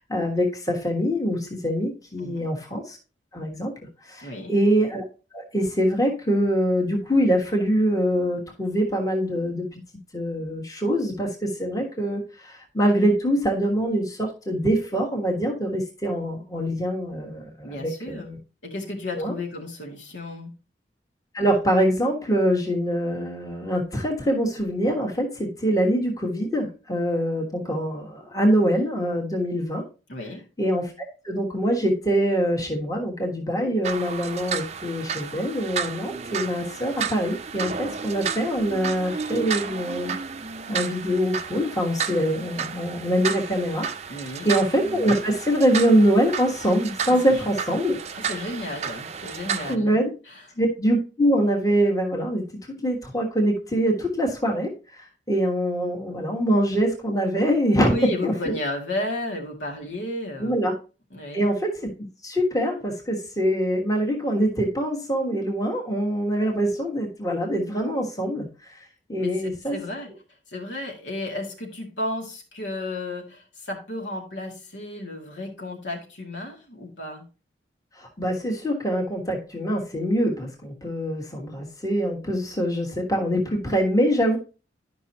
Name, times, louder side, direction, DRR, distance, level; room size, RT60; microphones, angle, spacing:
voice 1, 0.0-3.0 3.3-3.7 4.1-5.0 5.3-9.8 10.1-18.4 19.2-19.3 21.3-29.8 30.6-40.1 40.7-43.9 44.4-48.0 49.7-50.2 50.6-52.5 52.8-54.7 55.3-58.5 60.4-60.7 61.3-61.9 62.2-68.5 69.1-69.8 78.2-84.4, equal, 20° left, 0 dB, 1.4 m, -24 dB
voice 2, 4.2-4.5 17.6-18.3 18.6-20.5 30.1-30.5 44.1-44.5 47.3-47.4 48.1-50.0 50.3-50.5 57.8-60.6 61.1-61.5 69.2-70.1 70.5-77.2, left 1 dB, 85° left, 0 dB, 2.0 m, -33 dB
sound 1, 33.8-49.8, right 6 dB, 40° right, 0.5 m, -32 dB
11.0 x 5.4 x 2.8 m, 0.32 s
head